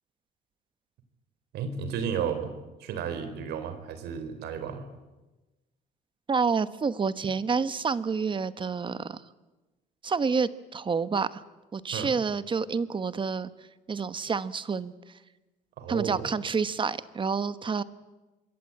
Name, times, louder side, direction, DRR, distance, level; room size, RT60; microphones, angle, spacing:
voice 1, 1.5-2.5 2.8-4.8 11.9-12.1 15.8-16.3, right 7 dB, 80° right, 10 dB, 4.2 m, -33 dB
voice 2, 6.3-9.2 10.0-11.4 11.7-13.5 13.9-14.9 15.9-17.8, right 5 dB, 30° right, 14 dB, 1.2 m, -28 dB
26.0 x 22.0 x 8.6 m, 1.1 s
cardioid pair, 110°, 17 cm